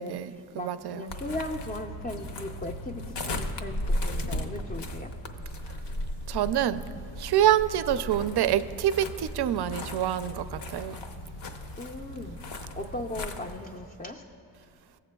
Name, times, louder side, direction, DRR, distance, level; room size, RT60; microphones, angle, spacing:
voice 1, 0.0-1.2 6.3-6.8 7.2-11.0, right 11 dB, 55° right, 0.5 m, -26 dB
voice 2, 0.5-5.2 11.6-12.4 12.8-14.2, left 1 dB, 20° left, 0.5 m, -38 dB
sound 1, 1.1-13.6, left 1 dB, 60° left, 0.8 m, -36 dB
15.5 x 7.5 x 2.3 m
supercardioid pair, 50°, 49 cm